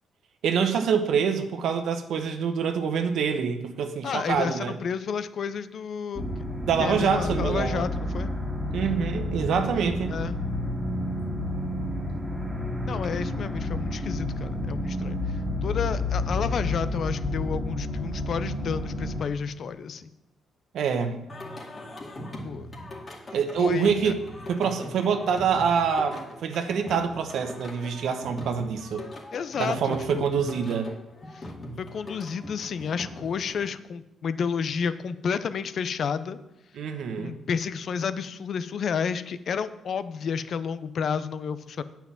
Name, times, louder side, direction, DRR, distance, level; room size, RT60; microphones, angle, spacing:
voice 1, 0.4-4.7 6.7-7.9 8.7-10.1 20.7-21.2 23.3-24.2 24.5-29.0 29.6-30.9 36.7-37.3, right 6 dB, 75° right, 6 dB, 1.0 m, -26 dB
voice 2, 4.0-6.3 6.8-8.3 10.1-10.4 12.9-15.2 15.6-20.1 22.4-22.7 23.6-24.1 29.3-29.8 30.1-30.3 31.3-31.4 31.8-36.4 37.2-41.8, left 6 dB, 55° left, 13 dB, 0.6 m, -31 dB
sound 1, 6.1-19.2, left 1 dB, 5° right, 2.0 m, -30 dB
Singing, 21.3-33.7, left 1 dB, 35° left, 2.4 m, -41 dB
9.3 x 5.8 x 7.3 m, 0.90 s
cardioid pair, 90°, 0 cm